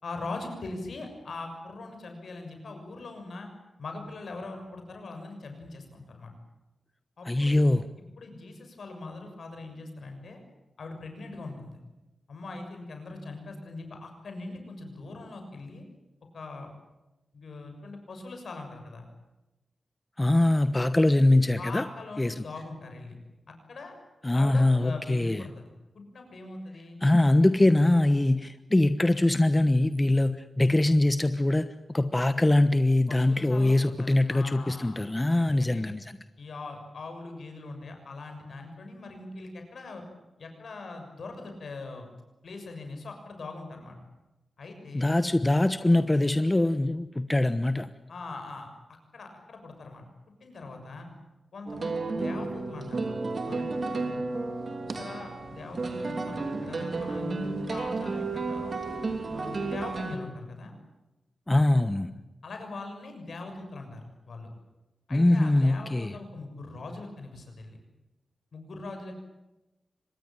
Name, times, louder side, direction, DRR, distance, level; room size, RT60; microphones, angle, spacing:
voice 1, 0.0-3.5 3.8-6.3 7.2-7.6 8.2-10.4 10.8-11.8 12.3-15.8 16.3-16.7 17.3-19.1 21.6-23.2 23.5-23.9 24.3-25.7 25.9-27.0 33.1-35.0 35.4-35.8 36.4-40.0 40.4-42.1 42.4-44.0 44.6-45.2 48.1-48.7 49.1-50.0 50.4-51.1 51.5-53.2 53.4-54.2 54.9-58.8 59.3-60.7 62.4-64.5 65.1-67.8 68.5-69.2, left 3 dB, 70° left, 5 dB, 6.7 m, -41 dB
voice 2, 7.3-7.8 20.2-21.8 22.2-22.3 24.2-25.4 27.0-31.7 31.9-36.0 44.9-47.9 61.5-62.1 65.1-66.1, left 1 dB, 20° left, 11 dB, 1.1 m, -23 dB
sound 1, 51.7-60.2, right 3 dB, 55° right, 3.0 m, -32 dB
25.0 x 20.5 x 9.1 m, 1.0 s
cardioid pair, 60°, 0 cm